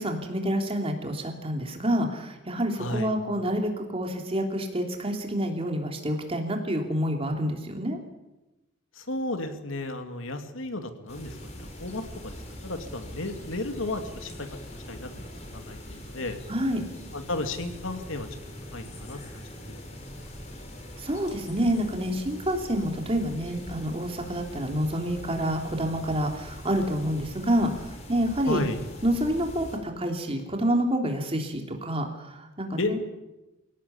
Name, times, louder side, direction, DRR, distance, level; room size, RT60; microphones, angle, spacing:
voice 1, 0.0-8.0 16.5-16.8 21.0-27.7 28.1-28.6 29.0-33.0, equal, 30° right, 3 dB, 3.2 m, -28 dB
voice 2, 2.8-3.1 8.9-16.4 17.1-18.3 18.7-19.2 19.7-19.8 28.5-28.8 32.8-32.9, left 2 dB, 75° left, 7 dB, 2.5 m, -33 dB
sound 1, 11.1-29.8, equal, 35° left, 4.9 m, -42 dB
23.0 x 17.5 x 8.5 m, 1.0 s
head